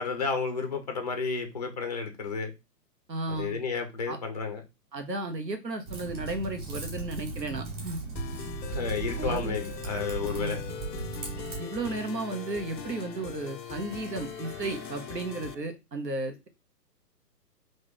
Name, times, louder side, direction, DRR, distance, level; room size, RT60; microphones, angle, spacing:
voice 1, 0.0-2.5 3.3-4.6 8.7-10.6, left 4 dB, 30° left, 0.3 m, -32 dB
voice 2, 3.1-3.6 4.1-4.2 4.9-8.0 9.1-9.6 10.3-10.6 11.6-16.5, right 2 dB, 85° right, 1.1 m, -34 dB
Typing, 5.8-11.6, right 3 dB, 25° right, 1.3 m, -37 dB
sound 1, 8.2-15.5, left 8 dB, 90° left, 0.6 m, -41 dB
sound 2, 9.5-15.6, right 2 dB, 40° right, 1.0 m, -52 dB
3.1 x 2.6 x 3.8 m
figure-of-eight pair, 125°, 49 cm